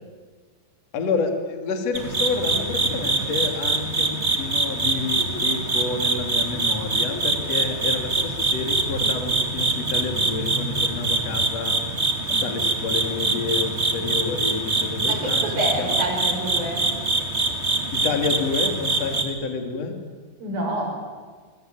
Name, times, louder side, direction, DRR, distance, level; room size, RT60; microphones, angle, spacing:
voice 1, 0.9-11.8 12.3-16.0 17.9-20.0, left 4 dB, 40° left, 6 dB, 3.2 m, -29 dB
sound 1, 1.9-19.2, right 3 dB, 25° right, 1.5 m, -24 dB
voice 2, 15.0-16.9 20.4-20.9, right 1 dB, 55° right, 1 dB, 8.3 m, -27 dB
26.5 x 24.0 x 9.2 m, 1.5 s
omnidirectional pair, 5.0 m